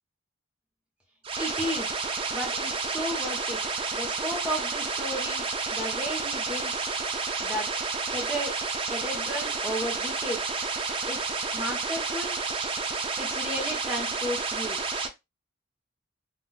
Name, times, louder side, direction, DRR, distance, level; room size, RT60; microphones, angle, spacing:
sound 1, 1.2-15.1, right 4 dB, 30° right, 0.4 m, -30 dB
voice 1, 1.4-2.0 2.3-3.6 3.9-5.4 5.7-6.9 7.4-7.7 8.1-8.5 8.9-10.5 11.1-12.4 13.2-14.8, equal, 5° right, -2 dB, 1.1 m, -34 dB
3.7 x 2.4 x 2.4 m, 0.22 s
head